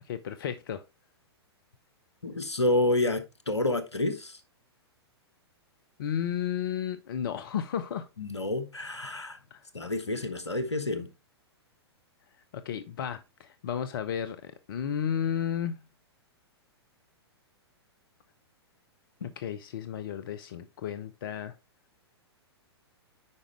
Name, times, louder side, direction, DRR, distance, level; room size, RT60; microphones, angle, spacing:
voice 1, 0.1-0.8 6.0-8.1 9.5-9.6 12.5-15.7 19.2-21.5, left 9 dB, 55° left, 0.7 m, -33 dB
voice 2, 2.2-4.3 8.2-9.4 9.7-11.1, left 1 dB, 85° left, 1.3 m, -29 dB
9.6 x 5.1 x 3.3 m
figure-of-eight pair, 105°, 14 cm